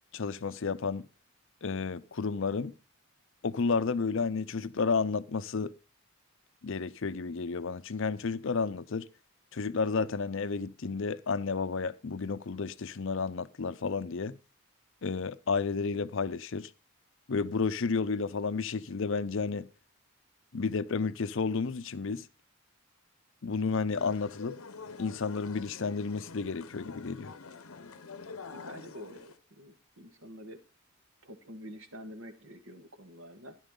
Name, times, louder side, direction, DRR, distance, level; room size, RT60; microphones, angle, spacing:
voice 1, 0.1-1.1 1.6-2.7 3.4-5.7 6.6-9.1 9.5-14.4 15.0-16.7 17.3-19.7 20.5-22.3 23.4-24.6 25.0-27.3, left 4 dB, 60° left, 0.6 m, -31 dB
sound 1, 24.0-29.4, left 4 dB, 85° left, 0.9 m, -46 dB
voice 2, 28.5-30.6 31.2-33.6, equal, 65° right, 1.8 m, -47 dB
13.0 x 11.0 x 3.8 m
head